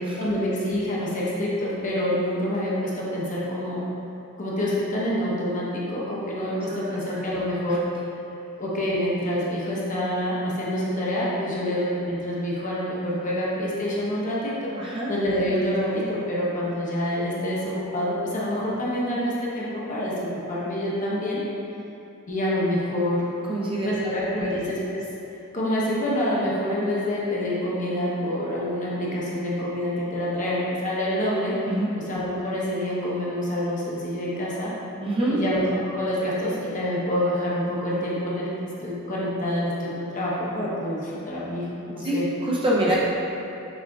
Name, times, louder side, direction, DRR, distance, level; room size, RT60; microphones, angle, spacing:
voice 1, 0.1-3.8 4.4-7.9 8.6-21.4 22.3-23.3 23.8-25.0 25.5-31.6 32.0-34.7 35.3-35.7 35.9-38.5 38.8-42.3 42.8-42.9, left 1 dB, 35° left, -6 dB, 0.9 m, -27 dB
voice 2, 6.8-7.4 14.8-15.1 23.5-24.0 24.4-24.5 31.7-31.9 35.0-35.4 42.0-42.2 42.4-43.0, right 1 dB, 25° right, -6 dB, 0.6 m, -25 dB
6.4 x 3.5 x 2.3 m, 2.8 s
head